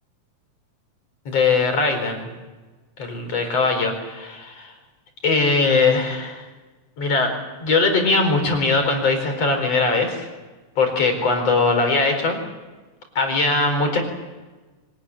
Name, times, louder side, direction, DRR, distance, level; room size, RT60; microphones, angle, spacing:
voice 1, 1.3-2.3 3.0-4.7 5.2-6.5 7.0-7.3 7.6-10.3 10.8-12.4 13.2-14.0, left 3 dB, 50° left, 4 dB, 5.5 m, -20 dB
24.5 x 19.0 x 9.6 m, 1.2 s
omnidirectional pair, 3.7 m